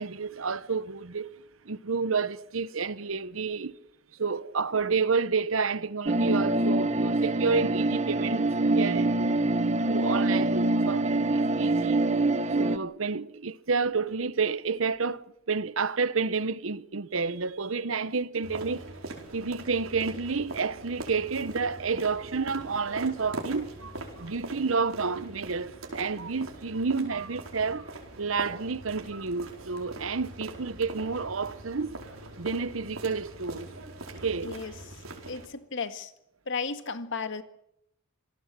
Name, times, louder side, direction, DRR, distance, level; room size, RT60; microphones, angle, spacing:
voice 1, 0.0-1.3 1.6-3.7 4.2-9.3 9.8-12.1 12.6-18.8 19.3-23.7 24.2-27.9 28.2-32.0 32.4-33.7 34.2-34.6, right 4 dB, 70° right, 0.9 m, -30 dB
sound 1, 6.1-12.8, right 2 dB, 35° right, 1.1 m, -25 dB
sound 2, 18.4-35.5, right 2 dB, 90° right, 4.6 m, -42 dB
voice 2, 34.4-34.7 35.3-36.1 36.5-37.4, left 4 dB, 60° left, 1.8 m, -34 dB
27.0 x 18.0 x 7.5 m
head